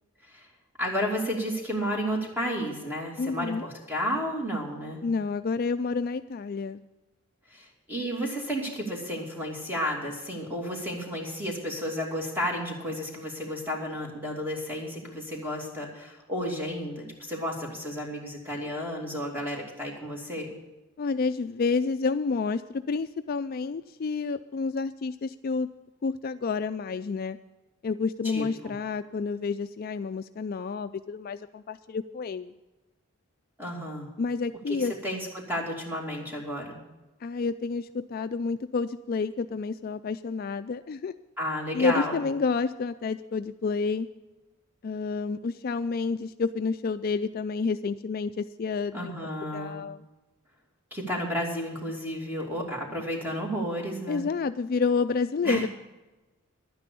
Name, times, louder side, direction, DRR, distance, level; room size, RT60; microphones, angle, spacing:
voice 1, 0.8-5.0 7.5-20.5 28.2-28.7 33.6-34.1 34.7-36.8 41.4-42.2 48.9-49.8 50.9-54.3 55.4-55.7, equal, 10° right, 0 dB, 2.6 m, -32 dB
voice 2, 3.2-3.6 5.0-6.8 21.0-25.7 26.0-27.4 27.8-32.5 34.2-34.9 37.2-41.1 41.7-44.1 44.8-49.1 49.5-50.0 54.1-55.7, left 4 dB, 45° left, 10 dB, 0.3 m, -29 dB
11.5 x 9.6 x 6.8 m, 1.1 s
head